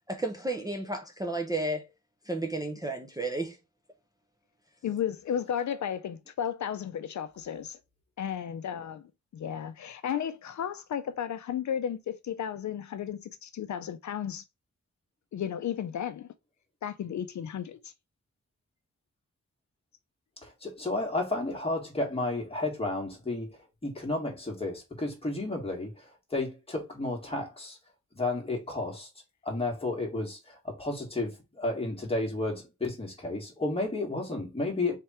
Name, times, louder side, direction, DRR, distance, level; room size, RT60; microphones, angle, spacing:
voice 1, 0.1-1.9 2.3-3.6, right 2 dB, 15° right, 0.5 m, -32 dB
voice 2, 4.8-7.8 8.2-14.4 15.3-16.3 16.8-17.9, left 9 dB, 70° left, 0.4 m, -34 dB
voice 3, 20.4-23.6 23.8-25.9 26.3-27.8 28.1-29.1 29.4-34.9, left 2 dB, 20° left, 1.6 m, -32 dB
3.7 x 3.4 x 4.3 m
wide cardioid pair, 165°, 29 cm